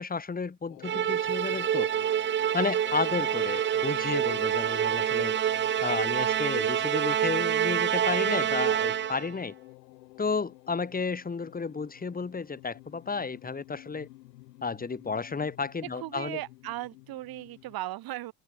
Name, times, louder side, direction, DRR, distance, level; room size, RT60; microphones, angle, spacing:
voice 1, 0.0-1.9 2.5-5.3 5.8-9.5 10.2-14.1 14.6-16.4, left 4 dB, 15° left, 1.5 m, -32 dB
sound 1, 0.7-17.8, left 19 dB, 75° left, 3.4 m, -48 dB
Musical instrument, 0.8-9.3, right 10 dB, 25° right, 0.5 m, -27 dB
voice 2, 15.8-18.3, right 15 dB, 45° right, 1.0 m, -37 dB
figure-of-eight pair, 55°, 50 cm